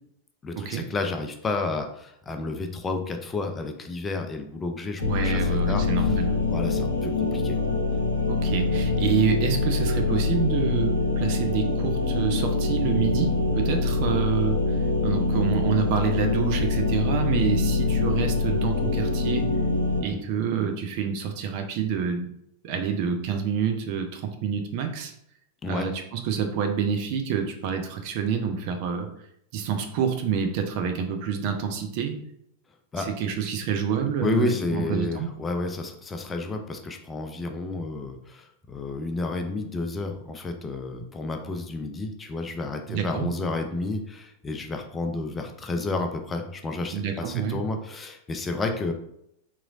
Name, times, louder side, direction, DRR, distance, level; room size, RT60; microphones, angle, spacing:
voice 1, 0.4-5.4 5.7-6.2 6.5-7.6 20.1-20.2 25.6-25.9 32.9-33.1 34.2-48.9, left 3 dB, 20° left, 5 dB, 0.4 m, -31 dB
sound 1, 5.0-20.0, left 3 dB, 65° left, 0.5 m, -24 dB
voice 2, 5.0-6.4 8.3-19.5 20.0-22.3 22.6-25.1 25.7-29.1 29.5-32.2 33.0-35.3 42.9-43.3 46.9-47.6, right 7 dB, 45° right, 5 dB, 0.5 m, -27 dB
3.9 x 3.0 x 2.4 m, 0.74 s
figure-of-eight pair, 90°, 0 cm